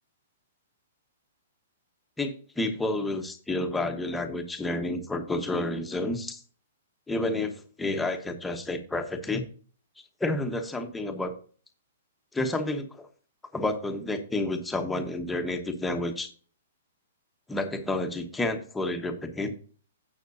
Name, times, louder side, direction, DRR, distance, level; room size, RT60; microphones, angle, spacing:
voice 1, 2.2-6.4 7.1-9.4 10.2-11.3 12.3-13.1 13.5-16.3 17.5-19.5, left 2 dB, 5° left, 4 dB, 1.1 m, -30 dB
16.5 x 6.0 x 2.7 m, 0.42 s
hypercardioid pair, 155°, 0 cm